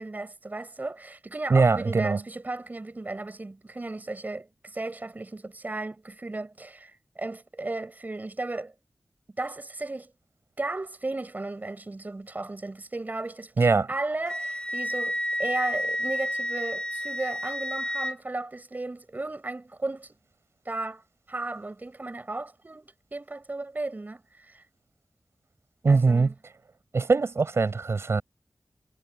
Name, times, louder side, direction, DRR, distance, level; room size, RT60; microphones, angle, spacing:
voice 1, 0.0-8.7 9.4-10.1 10.6-20.1 20.6-21.0 21.3-24.6 25.9-26.3, right 2 dB, 40° right, 7.4 m, -35 dB
voice 2, 1.5-2.2 13.6-13.9 25.8-26.3 26.9-28.2, right 4 dB, 70° right, 7.1 m, -22 dB
Wind instrument woodwind instrument, 14.3-18.1, left 1 dB, 15° left, 2.2 m, -30 dB
wide cardioid pair, 75°, 5 cm